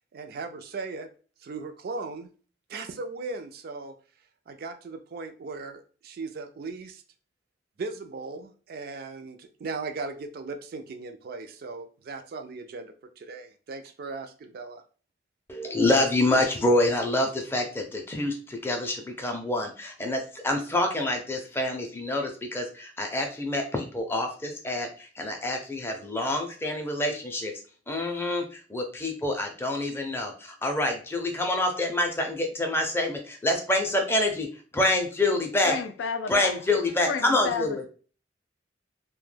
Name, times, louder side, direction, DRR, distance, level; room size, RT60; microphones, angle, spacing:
voice 1, 0.1-1.1 1.4-2.3 2.7-4.0 4.5-7.0 7.8-14.8, right 3 dB, 55° right, 0.3 m, -38 dB
voice 2, 15.5-27.5 27.9-34.5 34.7-35.8 36.3-37.8, left 2 dB, 15° left, 0.4 m, -27 dB
voice 3, 35.7-36.6 37.1-37.9, left 6 dB, 85° left, 0.3 m, -31 dB
2.1 x 2.1 x 3.2 m
head